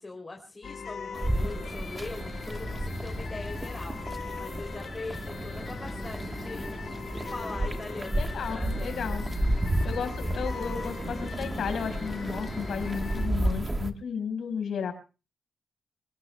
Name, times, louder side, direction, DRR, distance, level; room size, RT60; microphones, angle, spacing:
voice 1, 0.0-6.7 7.0-9.2, left 3 dB, 20° left, 3 dB, 3.1 m, -42 dB
sound 1, 0.6-13.3, left 6 dB, 65° left, 1.4 m, -40 dB
sound 2, 1.1-13.9, right 1 dB, 20° right, 1.2 m, -32 dB
voice 2, 8.1-9.2 9.8-14.9, left 6 dB, 80° left, 6 dB, 4.6 m, -33 dB
27.0 x 19.0 x 2.2 m, 0.34 s
wide cardioid pair, 145°, 0 cm